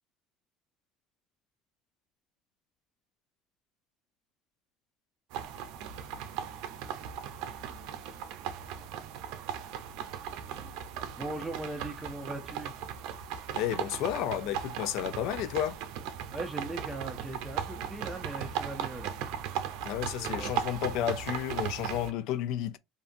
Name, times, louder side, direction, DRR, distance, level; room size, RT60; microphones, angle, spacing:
sound 1, 5.3-22.1, right 9 dB, 80° right, 0.5 m, -37 dB
voice 1, 11.1-12.8 16.3-19.2 20.2-20.5, right 2 dB, 10° right, 0.6 m, -39 dB
voice 2, 13.5-15.8 19.8-22.8, left 11 dB, 70° left, 0.3 m, -32 dB
2.6 x 2.5 x 2.5 m
cardioid pair, 120°, 0 cm